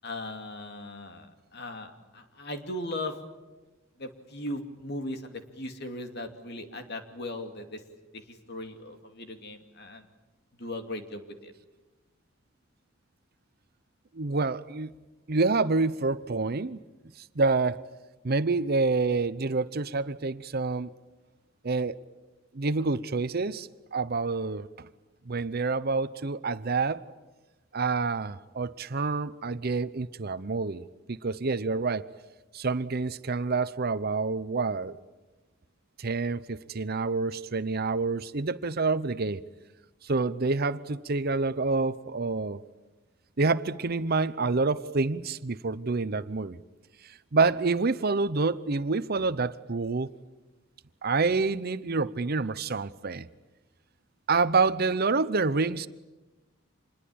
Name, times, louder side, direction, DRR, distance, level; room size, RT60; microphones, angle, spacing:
voice 1, 0.0-3.2 4.0-7.8 8.1-10.1 10.6-11.5, left 1 dB, 55° left, 2.7 m, -38 dB
voice 2, 14.1-14.9 15.3-16.8 17.3-17.8 18.2-20.9 21.6-22.0 22.5-24.9 25.3-27.1 27.7-32.1 32.5-35.0 36.0-39.4 40.0-42.6 43.4-46.6 47.3-50.1 51.0-53.3 54.3-55.9, right 3 dB, 50° right, 0.8 m, -27 dB
26.5 x 21.5 x 8.7 m
head